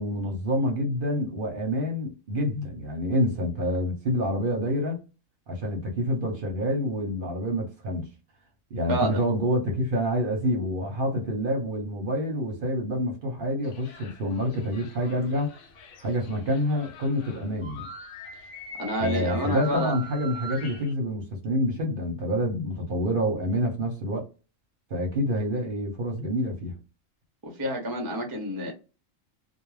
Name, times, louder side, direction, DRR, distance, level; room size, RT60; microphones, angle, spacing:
voice 1, 0.0-5.0 5.5-8.1 8.7-15.5 16.0-17.9 19.0-24.3 24.9-26.7, equal, 50° right, 0.8 m, -27 dB
voice 2, 8.9-9.2 18.8-19.9 27.4-28.7, equal, 25° right, 0.5 m, -28 dB
sound 1, 13.6-20.9, equal, 70° left, 0.9 m, -43 dB
2.3 x 2.2 x 3.1 m
omnidirectional pair, 1.4 m